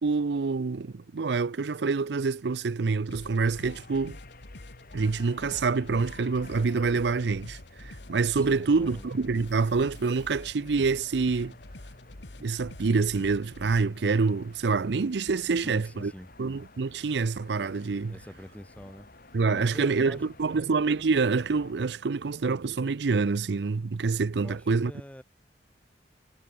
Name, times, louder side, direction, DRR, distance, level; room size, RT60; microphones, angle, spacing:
voice 1, 0.0-4.2 4.9-11.5 12.4-16.1 16.4-18.1 19.3-24.9, right 4 dB, 70° right, 0.5 m, -26 dB
sound 1, 3.1-13.9, left 1 dB, 75° left, 1.9 m, -46 dB
sound 2, 3.5-21.7, left 2 dB, 55° left, 7.2 m, -53 dB
voice 2, 8.5-9.0 15.5-16.3 18.1-19.1 19.5-20.6 24.4-25.2, equal, 10° left, 1.3 m, -45 dB
head